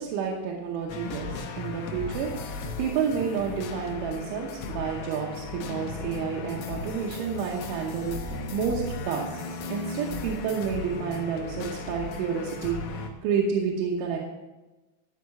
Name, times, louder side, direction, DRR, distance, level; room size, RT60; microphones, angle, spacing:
voice 1, 0.0-9.4 9.7-14.2, right 6 dB, 85° right, -1 dB, 3.4 m, -30 dB
sound 1, 0.9-13.1, left 4 dB, 75° left, 3.1 m, -36 dB
13.5 x 4.8 x 8.2 m, 1.1 s
omnidirectional pair, 5.4 m